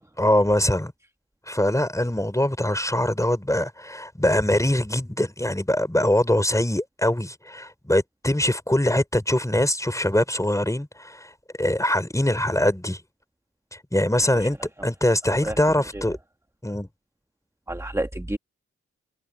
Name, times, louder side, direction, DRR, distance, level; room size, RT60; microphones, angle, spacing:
voice 1, 0.2-0.9 1.5-11.3 11.6-13.0 13.9-14.6 14.8-16.2 16.6-16.9, left 1 dB, 10° left, 4.6 m, -23 dB
voice 2, 17.7-18.4, right 1 dB, 10° right, 1.6 m, -29 dB
cardioid pair, 40°, 29 cm